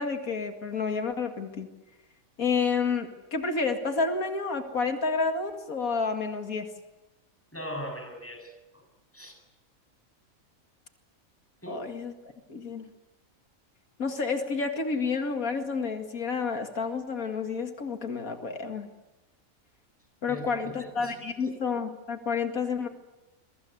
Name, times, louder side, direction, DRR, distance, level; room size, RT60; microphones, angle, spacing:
voice 1, 0.0-1.7 2.4-6.7 11.7-12.1 12.5-12.9 14.0-18.9 20.2-22.9, left 4 dB, 85° left, 6 dB, 2.6 m, -30 dB
voice 2, 7.5-8.5 9.1-9.4 11.6-11.8 20.3-20.4 20.8-21.5, equal, 10° left, 3 dB, 7.7 m, -39 dB
28.5 x 23.0 x 8.1 m, 1.0 s
omnidirectional pair, 1.4 m